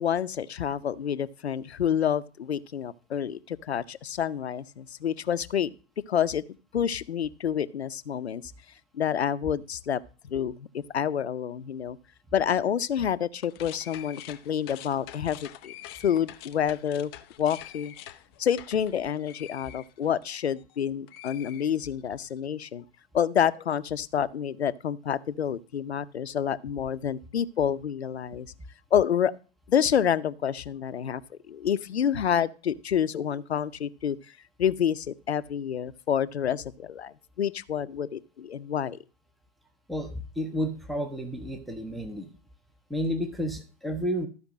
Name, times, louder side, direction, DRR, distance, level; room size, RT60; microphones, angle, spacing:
voice 1, 0.0-5.7 6.1-6.4 6.7-8.5 8.9-12.0 12.3-15.7 16.0-17.1 17.4-17.9 18.4-22.8 23.1-28.5 28.9-29.3 29.7-34.2 34.6-39.0, left 8 dB, 65° left, 15 dB, 0.7 m, -28 dB
sound 1, 13.3-20.8 21.1-22.2, left 13 dB, 25° left, 0.5 m, -46 dB
voice 2, 39.9-42.3 42.9-44.3, equal, ahead, 7 dB, 0.8 m, -31 dB
13.5 x 5.1 x 6.2 m, 0.35 s
figure-of-eight pair, 110°, 34 cm